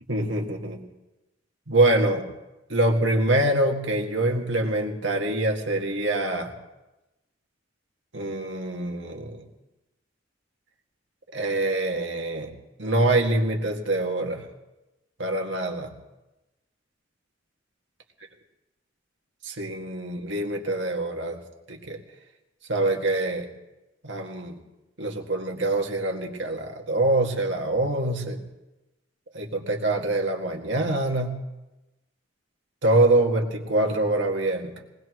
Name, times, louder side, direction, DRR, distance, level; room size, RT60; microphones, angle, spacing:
voice 1, 0.1-0.8 1.7-2.3 2.7-6.5 8.1-9.4 11.3-12.5 12.8-14.4 15.2-15.9 19.4-21.4 21.7-22.0 22.7-23.5 24.0-24.6 25.0-28.4 29.3-31.3 32.8-34.7, right 2 dB, 75° right, 2 dB, 2.1 m, -25 dB
22.5 x 19.5 x 3.1 m, 1.0 s
head